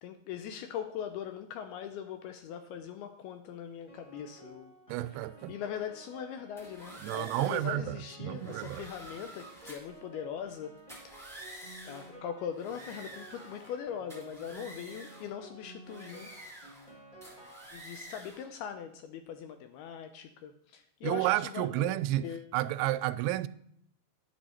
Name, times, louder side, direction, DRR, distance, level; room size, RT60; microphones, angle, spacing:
voice 1, 0.0-4.7 5.1-5.2 5.5-11.2 11.9-16.8 17.7-22.5, left 8 dB, 80° left, 2.3 m, -41 dB
Piano, 3.9-18.3, right 2 dB, 55° left, 0.5 m, -53 dB
voice 2, 4.9-5.5 7.0-8.8 21.0-22.3 22.5-23.5, right 15 dB, 90° right, 2.9 m, -31 dB
sound 1, 6.6-7.8 8.3-10.0 10.8-12.1 12.5-13.8 14.1-15.3 15.8-16.9 17.2-18.5, right 1 dB, ahead, 1.7 m, -49 dB
11.5 x 10.0 x 4.3 m
omnidirectional pair, 5.2 m